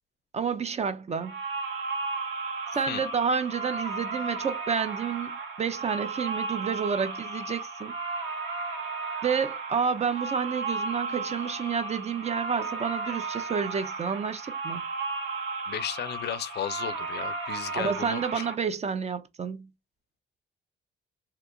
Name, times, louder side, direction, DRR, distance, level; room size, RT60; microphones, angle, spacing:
voice 1, 0.3-1.4 2.7-7.9 9.2-14.8 17.7-19.7, right 6 dB, 35° right, 0.5 m, -30 dB
sound 1, 1.2-18.6, right 3 dB, 80° right, 1.0 m, -34 dB
voice 2, 15.7-18.5, left 11 dB, 55° left, 0.4 m, -34 dB
2.9 x 2.2 x 3.7 m
cardioid pair, 90°, 20 cm